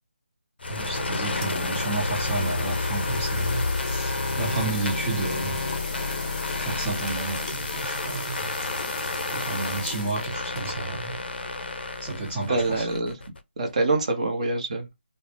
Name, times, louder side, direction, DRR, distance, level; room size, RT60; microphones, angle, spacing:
sound 1, 0.6-13.4, left 3 dB, 55° left, 0.5 m, -30 dB
voice 1, 0.7-4.1 4.4-5.6 6.5-8.5 9.3-11.2 12.0-12.9, right 3 dB, 10° right, 0.4 m, -31 dB
sound 2, 1.2-11.2, left 3 dB, 40° left, 0.8 m, -38 dB
voice 2, 12.5-13.2 13.6-14.9, right 2 dB, 35° right, 0.7 m, -25 dB
2.3 x 2.0 x 3.3 m
figure-of-eight pair, 165°, 6 cm